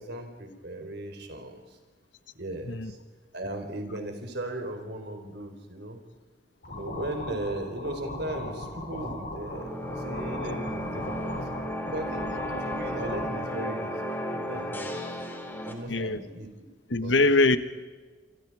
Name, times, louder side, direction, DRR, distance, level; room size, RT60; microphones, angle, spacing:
voice 1, 0.0-1.8 2.3-3.0 3.3-6.0 6.7-11.4 11.8-12.3 12.6-13.9 14.3-15.1 15.6-16.5 17.0-17.1, right 1 dB, 65° right, 5 dB, 4.5 m, -37 dB
sound 1, 6.6-13.3, left 1 dB, 55° left, 6.6 m, -38 dB
sound 2, 9.3-15.7, equal, 10° left, 3.5 m, -34 dB
voice 2, 15.9-16.2 16.9-17.6, left 2 dB, 85° left, 11 dB, 1.5 m, -22 dB
28.0 x 25.0 x 4.9 m, 1.3 s
head